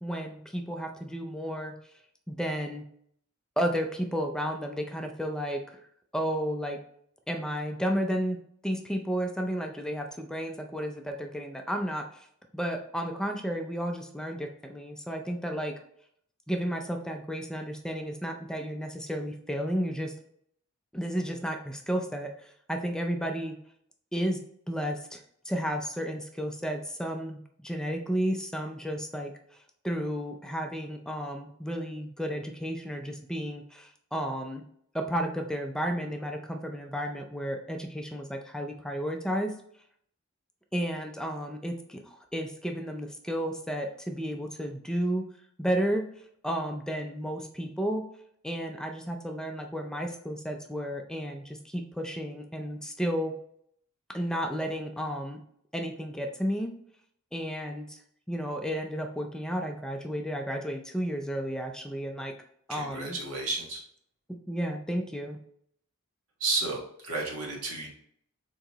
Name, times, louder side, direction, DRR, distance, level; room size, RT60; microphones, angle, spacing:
voice 1, 0.0-1.7 2.3-2.8 3.6-5.8 6.1-6.8 7.3-12.3 12.5-15.7 16.5-20.1 20.9-23.6 24.1-24.4 24.7-29.3 29.8-34.6 34.9-39.5 40.7-45.3 45.6-46.1 46.4-48.0 48.4-53.3 54.1-55.4 55.7-56.7 57.3-58.0 58.3-62.4 62.7-63.2 64.3-65.4, equal, 5° left, 4 dB, 0.4 m, -32 dB
voice 2, 62.7-63.8 66.4-67.9, right 3 dB, 90° right, -1 dB, 1.5 m, -32 dB
4.5 x 3.9 x 2.9 m, 0.67 s
head